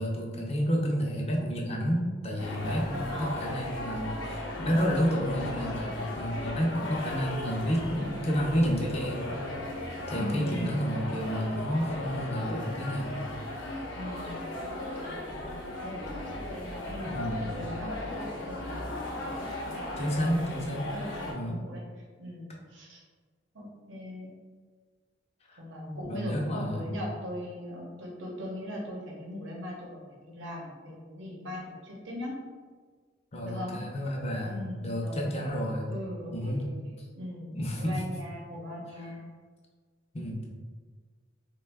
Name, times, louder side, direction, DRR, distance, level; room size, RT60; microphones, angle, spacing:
voice 1, 0.0-9.4 10.1-13.2 17.0-17.4 20.0-20.9 21.3-21.6 25.5-25.6 25.9-26.8 33.3-35.9 36.3-36.7 37.5-38.0 40.1-40.4, equal, 35° left, -1 dB, 0.5 m, -30 dB
sound 1, 2.4-21.3, left 1 dB, 85° left, 0.6 m, -37 dB
voice 2, 3.1-3.5 10.1-11.0 13.9-14.5 14.8-20.1 20.4-23.0 23.5-24.3 25.6-32.3 33.4-33.8 34.4-36.8 37.1-39.3, left 1 dB, 85° right, -2 dB, 0.8 m, -40 dB
3.0 x 2.2 x 3.4 m, 1.5 s
head